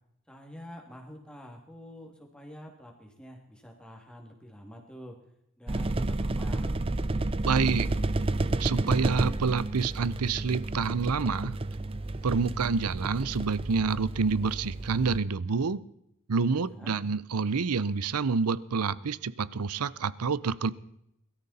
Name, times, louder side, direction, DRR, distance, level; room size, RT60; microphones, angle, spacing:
voice 1, 0.3-5.2 5.6-6.8 16.5-16.9, equal, 5° left, 1 dB, 2.5 m, -47 dB
sound 1, 5.7-15.2, right 2 dB, 25° right, 0.5 m, -31 dB
voice 2, 7.4-7.9 8.6-11.5 12.2-15.8 16.3-20.7, right 5 dB, 90° right, 18 dB, 0.7 m, -28 dB
22.0 x 13.0 x 4.2 m, 0.78 s
head